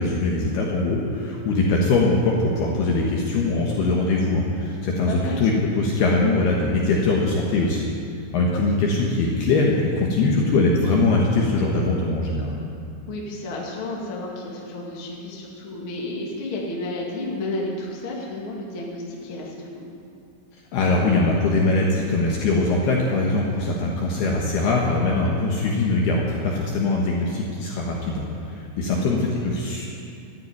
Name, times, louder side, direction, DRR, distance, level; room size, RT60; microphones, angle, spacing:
voice 1, 0.0-7.9 8.3-12.6 20.7-29.9, left 2 dB, 65° left, -2 dB, 2.8 m, -22 dB
voice 2, 5.1-5.6 13.1-19.9 28.8-29.2, left 2 dB, 40° left, -2 dB, 1.9 m, -32 dB
13.0 x 10.5 x 9.5 m, 2.5 s
omnidirectional pair, 5.9 m